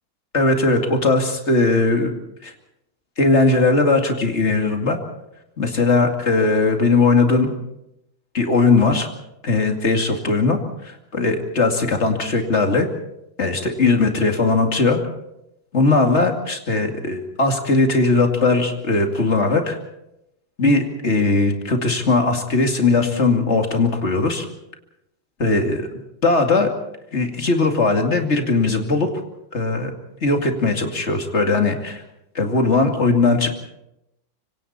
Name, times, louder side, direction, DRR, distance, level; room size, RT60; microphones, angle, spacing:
voice 1, 0.3-2.1 2.4-2.5 3.2-5.0 5.6-7.5 8.3-9.1 9.4-10.6 10.8-12.9 13.4-15.0 15.7-19.8 20.6-24.4 25.4-25.9 26.2-26.7 27.1-29.1 29.5-29.9 30.2-32.0 32.3-33.5, left 3 dB, 35° left, 4 dB, 2.7 m, -19 dB
25.5 x 25.0 x 4.3 m, 0.85 s
omnidirectional pair, 2.0 m